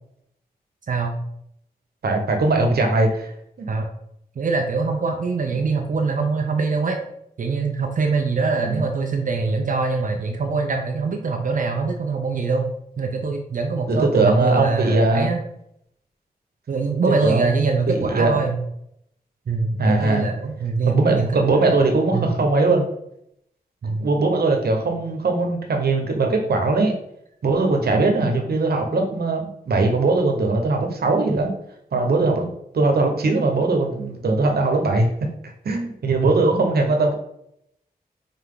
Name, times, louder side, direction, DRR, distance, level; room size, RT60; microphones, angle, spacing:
voice 1, 0.9-1.2 3.7-3.9 4.4-7.0 7.4-12.7 13.0-15.4 16.7-18.6 19.5-22.3 23.8-24.1, right 4 dB, 55° right, 4 dB, 0.6 m, -23 dB
voice 2, 2.0-3.3 3.6-3.7 8.7-8.8 13.9-15.3 17.2-18.4 19.8-20.3 20.9-22.9 24.0-26.9 27.4-31.5 31.9-35.1 35.4-37.1, right 3 dB, 80° right, 3 dB, 1.2 m, -20 dB
5.8 x 4.4 x 3.8 m, 0.75 s
wide cardioid pair, 170°, 16 cm